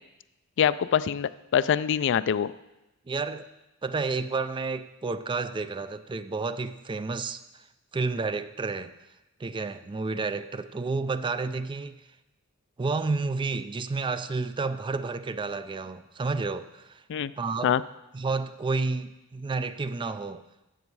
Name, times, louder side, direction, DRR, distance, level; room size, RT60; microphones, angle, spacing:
voice 1, 0.6-2.5 17.1-17.3 17.6-17.8, left 8 dB, 55° left, 16 dB, 0.3 m, -24 dB
voice 2, 3.1-3.5 3.8-7.7 7.9-8.9 9.4-12.0 12.8-17.0 17.4-17.8 18.1-20.4, right 3 dB, 20° right, 12 dB, 0.4 m, -30 dB
12.5 x 8.0 x 4.7 m, 0.98 s
head